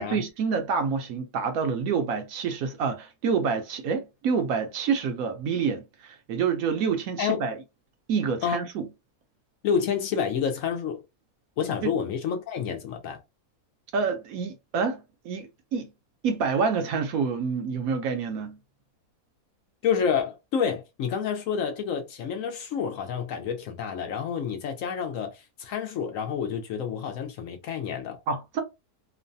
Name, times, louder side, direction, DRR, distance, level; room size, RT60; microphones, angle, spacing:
voice 1, 0.0-7.6 8.1-8.9 11.8-11.9 13.9-15.9 16.2-18.6 28.3-28.6, right 5 dB, 70° right, 1.0 m, -27 dB
voice 2, 9.6-11.0 11.6-13.2 19.8-28.2, left 7 dB, 70° left, 0.9 m, -29 dB
3.1 x 2.1 x 2.5 m
omnidirectional pair, 1.6 m